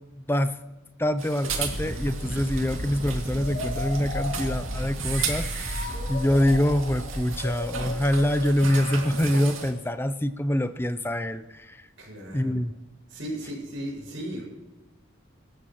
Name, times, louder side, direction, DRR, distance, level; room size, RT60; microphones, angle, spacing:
voice 1, 1.0-11.8 12.3-12.7, left 1 dB, 10° left, 11 dB, 0.5 m, -25 dB
sound 1, 1.2-9.7, right 6 dB, 85° right, 2.3 m, -36 dB
sound 2, 1.5-9.2, equal, 45° right, 2.3 m, -35 dB
sound 3, 3.4-10.1, left 2 dB, 50° left, 5.6 m, -38 dB
voice 2, 12.0-12.6 13.1-14.4, right 1 dB, 70° right, -2 dB, 6.4 m, -36 dB
23.5 x 13.5 x 3.1 m, 1.1 s
head